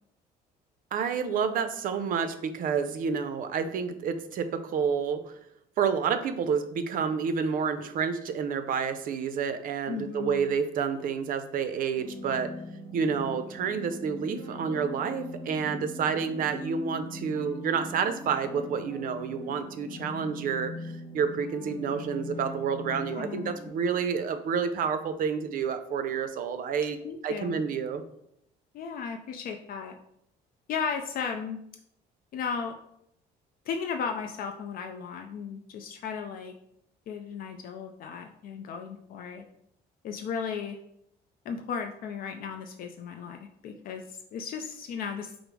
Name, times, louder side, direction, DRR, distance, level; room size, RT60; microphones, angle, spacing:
voice 1, 0.9-5.3 5.8-12.5 12.9-20.7 21.1-27.0 27.2-28.0, right 6 dB, 55° right, 10 dB, 0.5 m, -29 dB
voice 2, 9.9-10.5 23.0-23.6 27.0-27.6 28.7-30.0 30.7-31.6 32.3-32.8 33.7-36.5 37.1-39.4 40.0-40.8 41.5-45.3, left 6 dB, 60° left, 5 dB, 0.4 m, -35 dB
sound 1, 12.0-23.7, left 1 dB, 30° left, 1.4 m, -41 dB
5.0 x 2.0 x 4.6 m, 0.75 s
cardioid pair, 110°, 17 cm